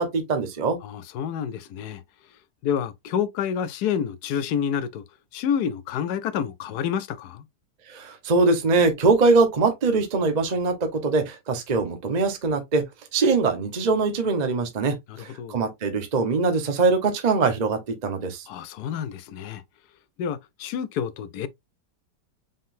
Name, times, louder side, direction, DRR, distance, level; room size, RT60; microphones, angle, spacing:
voice 1, 0.0-0.8 7.9-12.8 13.1-18.5, right 4 dB, 30° right, 0.9 m, -22 dB
voice 2, 0.8-2.0 2.6-5.0 5.3-7.5 15.1-15.6 18.5-19.6 20.2-21.5, left 8 dB, 75° left, 1.1 m, -28 dB
5.5 x 3.6 x 2.6 m
omnidirectional pair, 1.8 m